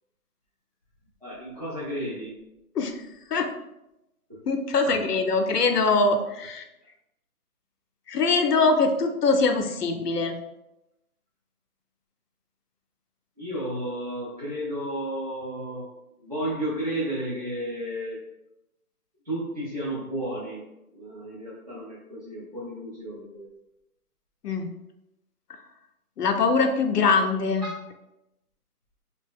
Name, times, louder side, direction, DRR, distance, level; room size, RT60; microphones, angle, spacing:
voice 1, 1.2-2.4 4.3-4.4 4.9-5.0 13.4-15.9 16.2-18.3 19.2-20.6 20.9-23.5, right 1 dB, 25° right, -10 dB, 0.5 m, -33 dB
voice 2, 4.5-6.6 8.1-10.4 24.4-24.7 26.2-27.7, left 4 dB, 80° left, 5 dB, 0.7 m, -23 dB
2.9 x 2.7 x 3.6 m, 0.90 s
hypercardioid pair, 165°, 46 cm